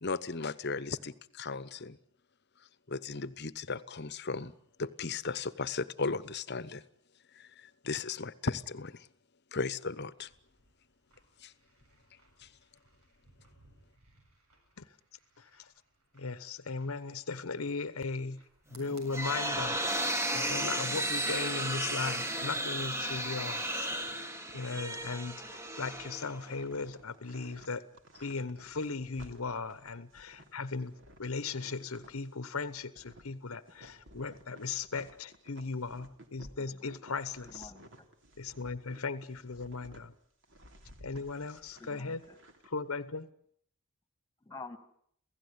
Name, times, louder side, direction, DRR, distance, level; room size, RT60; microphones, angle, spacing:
voice 1, 0.0-2.0 2.9-4.5 4.8-6.8 7.3-9.1 9.5-10.3 11.4-11.5 12.4-12.5, left 4 dB, 50° left, 1.0 m, -36 dB
sound 1, 10.1-21.9, right 2 dB, 85° right, 7.9 m, -64 dB
voice 2, 15.4-15.7 16.1-18.4 18.7-19.8 20.3-23.9 24.5-25.4 25.8-27.8 28.2-30.9 31.2-37.7 38.4-40.1 41.0-42.2 42.6-43.3, left 4 dB, 75° left, 1.0 m, -37 dB
sound 2, 18.8-26.6, right 1 dB, 10° right, 1.4 m, -34 dB
sound 3, 22.7-32.3 32.6-40.0 40.4-42.7, right 1 dB, 60° right, 3.3 m, -56 dB
voice 3, 23.9-24.3 28.1-28.2 32.1-32.2 36.6-36.9 37.4-38.1 41.8-42.4 44.4-44.8, left 3 dB, 10° left, 1.9 m, -50 dB
28.0 x 16.5 x 9.7 m
head